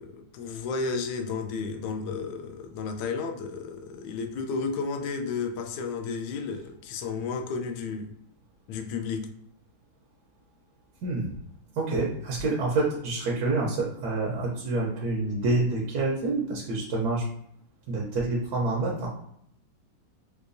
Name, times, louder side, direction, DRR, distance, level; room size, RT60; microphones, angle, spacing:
voice 1, 0.0-8.1 8.7-9.3, left 4 dB, 75° left, 5 dB, 1.2 m, -32 dB
voice 2, 11.0-11.4 11.7-17.2 17.9-19.1, right 2 dB, 65° right, -2 dB, 1.1 m, -27 dB
4.6 x 2.2 x 2.5 m, 0.71 s
omnidirectional pair, 2.1 m